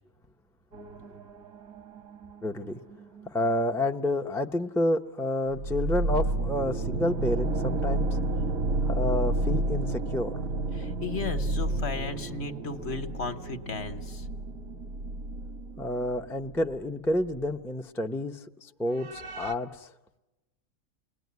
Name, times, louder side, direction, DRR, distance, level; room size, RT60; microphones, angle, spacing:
sound 1, 0.7-3.5 5.5-16.9 17.2-17.3 19.0-19.5, right 2 dB, 80° right, 1.6 m, -31 dB
voice 1, 2.4-2.8 3.3-8.2 8.8-10.4 15.8-19.9, left 1 dB, 5° left, 3 dB, 0.5 m, -29 dB
voice 2, 10.7-14.2, left 4 dB, 50° left, 9 dB, 1.4 m, -35 dB
29.5 x 20.5 x 9.4 m, 1.1 s
omnidirectional pair, 1.4 m